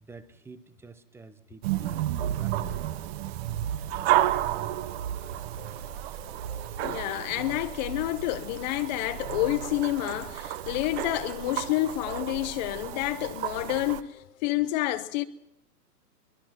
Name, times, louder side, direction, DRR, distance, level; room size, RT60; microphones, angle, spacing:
voice 1, 0.0-2.6, right 4 dB, 5° right, 0.8 m, -49 dB
sound 1, 1.6-14.0, right 13 dB, 40° right, 1.2 m, -32 dB
sound 2, 5.0-14.6, left 10 dB, 55° left, 2.6 m, -53 dB
voice 2, 6.8-15.2, left 16 dB, 30° left, 0.7 m, -29 dB
23.0 x 22.0 x 5.9 m
hypercardioid pair, 130°, 48 cm